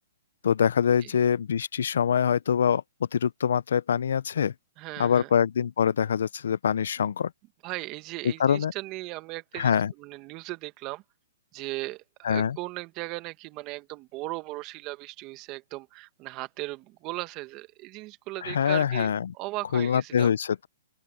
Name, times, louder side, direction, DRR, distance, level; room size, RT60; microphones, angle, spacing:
voice 1, 0.4-2.8 3.1-4.5 5.0-7.3 8.4-8.7 9.6-9.9 12.2-12.6 18.4-19.3 19.7-20.7, left 8 dB, 75° left, 0.6 m, -24 dB
voice 2, 4.8-5.3 7.6-11.0 11.5-20.3, right 21 dB, 30° right, 1.8 m, -37 dB
open air
hypercardioid pair, 145°, 0 cm